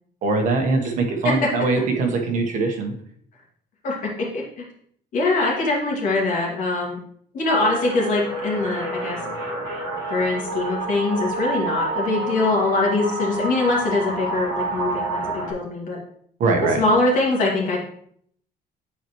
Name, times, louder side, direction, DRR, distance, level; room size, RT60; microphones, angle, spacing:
voice 1, 0.2-2.9 16.4-16.8, right 3 dB, 50° right, 3 dB, 1.3 m, -22 dB
voice 2, 3.8-4.6 5.1-7.0 7.3-9.2 10.1-16.0 16.8-17.8, left 2 dB, 50° left, -2 dB, 2.3 m, -23 dB
sound 1, 7.5-15.5, right 2 dB, 25° right, 1.7 m, -29 dB
9.9 x 4.5 x 3.1 m, 0.65 s
cardioid pair, 175°, 17 cm